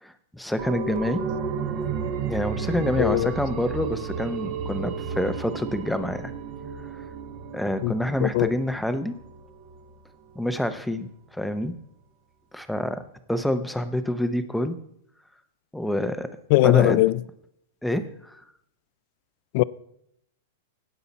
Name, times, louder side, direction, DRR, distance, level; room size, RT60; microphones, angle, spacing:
voice 1, 0.0-1.2 2.3-6.3 6.9-7.1 7.5-9.2 10.3-11.7 12.5-13.0 13.3-14.8 15.7-16.3 16.6-17.0 17.8-18.4, left 1 dB, ahead, 0.6 m, -27 dB
sound 1, 0.6-9.9 10.3-10.4, right 6 dB, 35° right, 1.0 m, -33 dB
voice 2, 3.0-3.3 7.8-7.9 8.2-8.5 16.5-17.2 19.5-19.6, left 19 dB, 50° left, 0.3 m, -20 dB
16.5 x 5.6 x 4.1 m
supercardioid pair, 150°, 0 cm